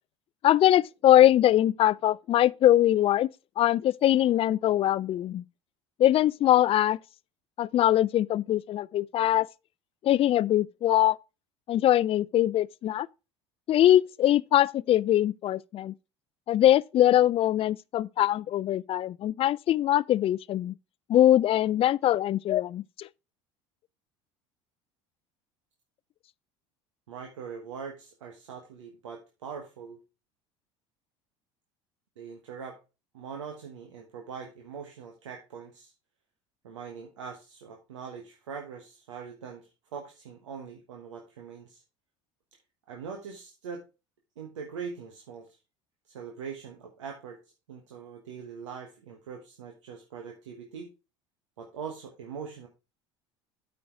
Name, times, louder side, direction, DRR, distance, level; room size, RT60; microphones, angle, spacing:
voice 1, 0.4-3.3 3.6-5.4 6.0-7.0 7.6-9.5 10.0-11.2 11.7-13.1 13.7-15.9 16.5-20.7 21.1-23.1, left 12 dB, 40° left, 0.4 m, -22 dB
voice 2, 27.1-30.0 32.2-32.8 33.1-35.9 36.6-41.8 42.9-43.8 44.4-45.6 46.1-47.4 47.7-50.9 51.6-52.7, right 6 dB, 85° right, 1.2 m, -42 dB
8.5 x 5.2 x 4.5 m
hypercardioid pair, 75°, 15 cm